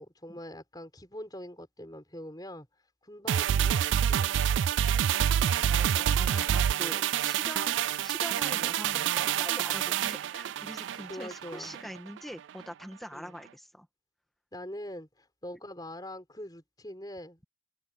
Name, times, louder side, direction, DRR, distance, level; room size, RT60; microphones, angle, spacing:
voice 1, 0.0-2.7 3.0-4.3 5.4-5.7 11.1-11.8 13.1-13.3 14.5-17.5, left 1 dB, 20° left, 6.0 m, -43 dB
sound 1, 3.3-11.9 12.2-12.3, right 9 dB, 80° right, 0.3 m, -27 dB
voice 2, 5.7-13.9, equal, ahead, 1.8 m, -43 dB
head